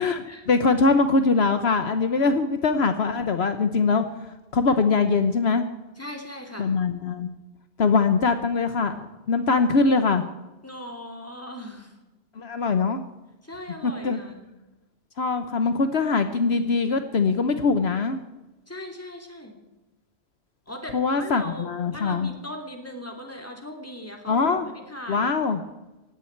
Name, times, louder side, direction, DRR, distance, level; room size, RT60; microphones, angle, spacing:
voice 1, 0.5-4.0 4.5-5.6 6.6-7.3 7.8-10.2 12.4-13.0 13.8-14.2 15.2-18.2 20.9-22.3 24.3-24.7 25.1-25.6, left 4 dB, 65° left, 8 dB, 1.2 m, -22 dB
voice 2, 6.0-6.7 10.6-12.0 13.4-14.4 18.7-19.6 20.7-25.6, left 1 dB, 10° left, 3 dB, 2.8 m, -39 dB
19.0 x 16.0 x 4.6 m, 1.1 s
omnidirectional pair, 1.2 m